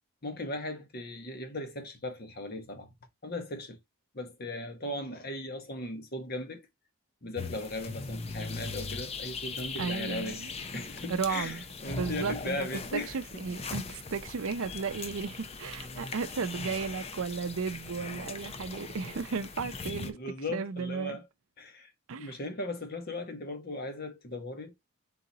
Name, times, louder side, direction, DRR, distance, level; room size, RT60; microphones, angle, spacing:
voice 1, 0.2-2.9 3.2-3.8 4.1-6.7 7.2-10.4 10.7-13.4 20.0-21.3 21.6-24.7, left 1 dB, 45° left, 1.1 m, -38 dB
sound 1, 7.3-20.1, left 4 dB, 30° left, 0.5 m, -40 dB
voice 2, 9.8-10.5 11.1-12.7 12.9-20.2 20.5-21.2 22.1-22.3, right 5 dB, 70° right, 0.5 m, -34 dB
4.1 x 3.8 x 2.7 m
head